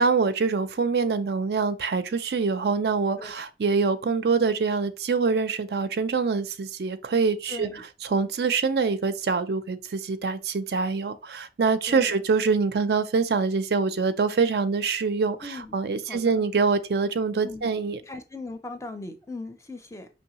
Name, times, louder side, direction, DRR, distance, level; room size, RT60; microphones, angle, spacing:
voice 1, 0.0-7.7 8.0-18.0, right 4 dB, 60° right, 0.4 m, -25 dB
voice 2, 7.5-7.8 11.9-12.1 15.4-15.8 16.1-16.5 17.4-17.7 18.0-20.1, left 2 dB, 15° left, 0.5 m, -39 dB
5.4 x 3.1 x 2.9 m
head